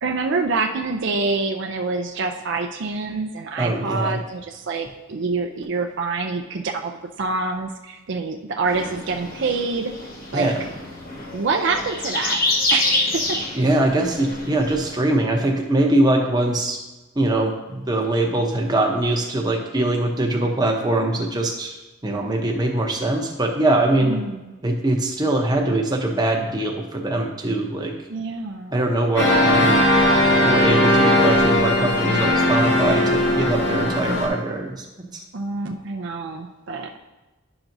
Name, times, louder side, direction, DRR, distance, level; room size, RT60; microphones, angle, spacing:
voice 1, 0.0-9.9 10.3-10.5 11.3-12.4 12.7-13.7 24.0-24.5 28.1-28.8 35.3-37.0, right 3 dB, 60° right, 5 dB, 0.5 m, -26 dB
voice 2, 3.6-4.2 10.3-10.6 13.6-16.8 17.2-21.8 22.0-24.2 24.6-27.9 28.7-29.8 30.4-34.8 35.1-35.2, right 1 dB, 20° right, 1 dB, 0.8 m, -22 dB
sound 1, 8.7-15.0, left 2 dB, 45° left, 1.2 m, -27 dB
sound 2, 29.2-34.3, left 1 dB, 60° left, 2.0 m, -18 dB
11.0 x 5.8 x 2.6 m, 1.1 s
head